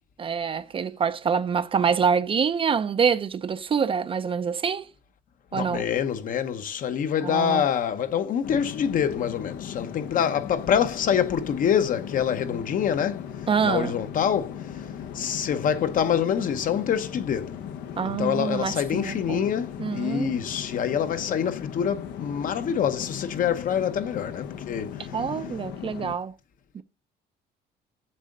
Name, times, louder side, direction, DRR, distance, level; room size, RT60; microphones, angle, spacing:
voice 1, 0.2-4.9 5.5-5.9 7.2-7.7 13.5-13.9 18.0-19.4 19.8-20.3 25.1-26.3 26.7-26.8, right 6 dB, 30° right, 0.5 m, -26 dB
voice 2, 5.5-13.3 13.6-14.8 15.1-17.6 18.0-25.0, left 8 dB, 55° left, 0.9 m, -26 dB
sound 1, 8.4-26.1, left 9 dB, 80° left, 0.8 m, -37 dB
7.6 x 3.7 x 6.5 m
cardioid pair, 110°, 17 cm